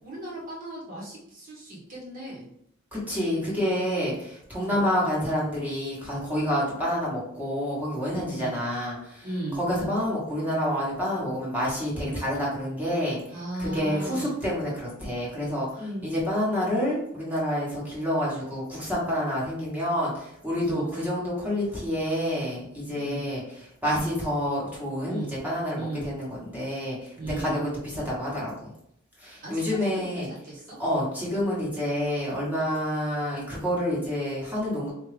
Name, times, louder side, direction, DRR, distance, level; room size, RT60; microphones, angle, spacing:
voice 1, 0.0-2.5 3.9-4.1 4.6-4.8 8.4-8.6 9.2-9.6 13.3-14.3 15.8-16.1 20.6-20.9 22.9-23.2 25.0-25.3 25.8-26.1 27.2-27.6 29.4-30.8 31.5-31.7, right 1 dB, 40° right, -6 dB, 1.5 m, -37 dB
voice 2, 2.9-9.3 9.6-13.2 13.6-15.7 16.0-28.7 29.2-30.3 30.8-34.9, equal, 10° right, -6 dB, 1.3 m, -28 dB
3.7 x 2.8 x 3.3 m, 0.73 s
head